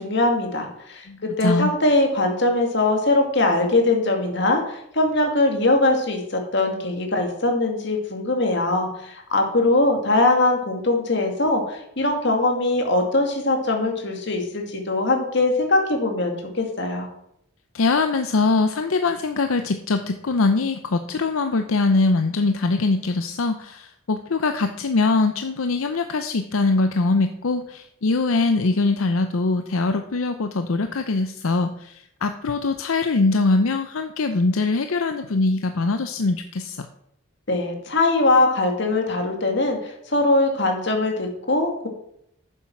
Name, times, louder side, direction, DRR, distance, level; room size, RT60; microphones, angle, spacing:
voice 1, 0.0-17.1 37.5-41.9, left 2 dB, 55° left, 3 dB, 2.1 m, -21 dB
voice 2, 1.1-1.7 17.7-36.9, left 3 dB, 80° left, 8 dB, 0.6 m, -22 dB
9.2 x 7.3 x 5.9 m, 0.74 s
head